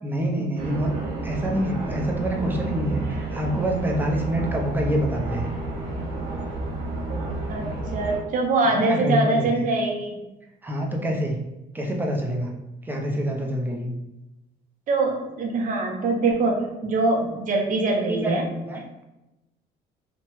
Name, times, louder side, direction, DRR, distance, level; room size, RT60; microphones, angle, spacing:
voice 1, 0.0-0.9 1.2-5.5 8.7-9.5 10.6-11.4 11.7-12.5 12.8-13.9 18.1-19.0, equal, 10° right, 0 dB, 0.5 m, -26 dB
sound 1, 0.6-8.2, right 2 dB, 75° right, 1.1 m, -30 dB
voice 2, 7.5-10.2 14.9-18.5, right 2 dB, 50° right, 1 dB, 0.7 m, -23 dB
2.9 x 2.2 x 3.0 m, 0.96 s
cardioid pair, 110°, 17 cm